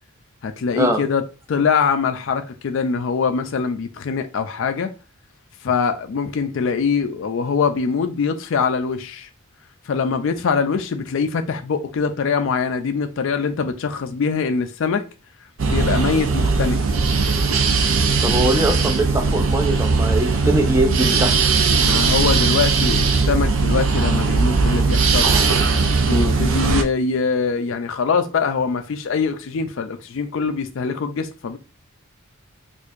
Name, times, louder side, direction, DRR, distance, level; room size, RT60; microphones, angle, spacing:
voice 1, 0.4-4.9 5.6-9.3 9.9-15.1 15.6-16.8 21.8-25.3 26.0-31.6, left 5 dB, 60° left, 0.4 m, -23 dB
sound 1, 15.6-26.8, right 4 dB, 65° right, 0.5 m, -19 dB
voice 2, 18.2-21.4 26.1-26.3, right 1 dB, 10° right, 0.5 m, -21 dB
4.5 x 2.5 x 2.5 m
head